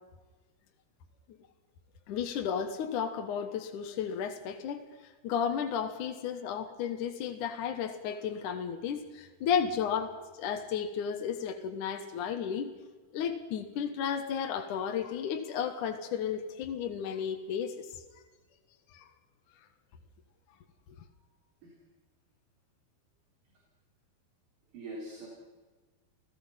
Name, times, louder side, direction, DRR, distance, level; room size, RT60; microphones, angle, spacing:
voice 1, 2.1-12.7 13.1-18.0 18.9-19.1, left 7 dB, 65° left, 5 dB, 2.4 m, -33 dB
voice 2, 24.7-25.3, right 2 dB, 55° right, -2 dB, 5.3 m, -44 dB
30.0 x 16.5 x 5.8 m, 1.3 s
omnidirectional pair, 4.5 m